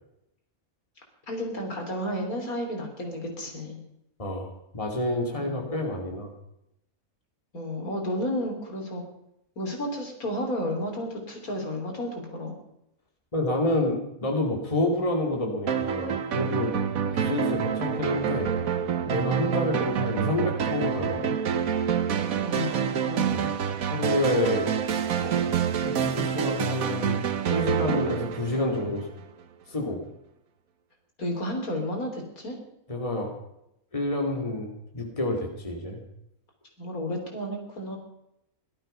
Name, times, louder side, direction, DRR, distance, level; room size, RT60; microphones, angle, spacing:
voice 1, 1.3-3.8 5.4-5.7 7.5-9.0 9.6-12.5 17.1-17.3 19.4-19.7 22.4-23.4 31.2-32.6 36.8-38.0, left 1 dB, 75° left, 2 dB, 3.7 m, -32 dB
voice 2, 4.2-6.3 13.3-18.5 19.0-21.4 23.3-23.5 23.9-24.7 25.2-27.1 27.5-29.1 29.7-30.0 32.9-33.3 33.9-36.0, left 1 dB, 20° left, 1 dB, 2.7 m, -29 dB
sound 1, 15.7-29.2, right 8 dB, 70° right, 1.4 m, -27 dB
17.0 x 12.5 x 5.6 m, 0.82 s
omnidirectional pair, 1.5 m